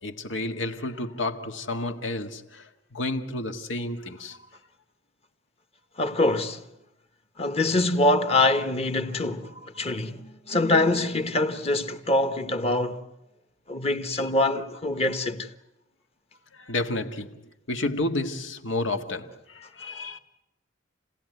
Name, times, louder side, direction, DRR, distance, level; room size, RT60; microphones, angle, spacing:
voice 1, 0.0-4.4 14.2-14.3 16.5-17.4 17.7-20.2, left 2 dB, 85° left, 1.7 m, -31 dB
voice 2, 6.0-6.6 7.4-13.0 13.7-15.5, left 2 dB, 35° left, 1.3 m, -24 dB
29.0 x 17.0 x 9.4 m
head